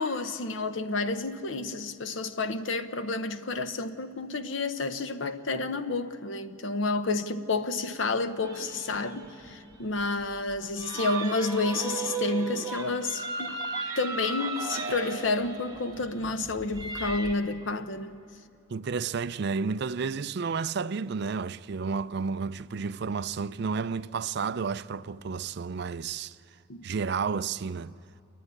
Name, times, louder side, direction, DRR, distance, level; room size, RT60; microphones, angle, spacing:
voice 1, 0.0-13.5 14.0-18.2 26.7-26.8, left 3 dB, 65° left, 0.9 m, -30 dB
sound 1, 8.4-17.3, right 4 dB, 15° right, 1.9 m, -36 dB
voice 2, 18.7-26.4 26.8-28.0, right 5 dB, 55° right, 0.4 m, -31 dB
28.0 x 11.0 x 9.7 m
head